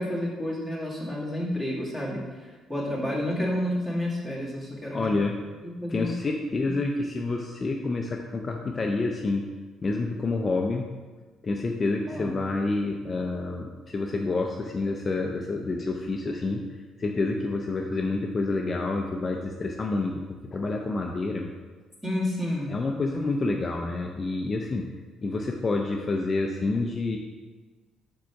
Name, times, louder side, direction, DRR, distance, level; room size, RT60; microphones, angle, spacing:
voice 1, 0.0-2.2 2.7-5.1 5.6-6.1 6.6-6.7 12.1-12.4 22.0-22.7, left 1 dB, 10° right, -5 dB, 2.0 m, -30 dB
voice 2, 4.9-5.4 5.9-9.5 9.8-10.9 11.4-16.6 17.0-21.5 22.7-24.9 25.2-27.2, left 3 dB, 30° left, 1 dB, 0.5 m, -28 dB
4.9 x 4.7 x 5.7 m, 1.3 s
cardioid pair, 110°, 0 cm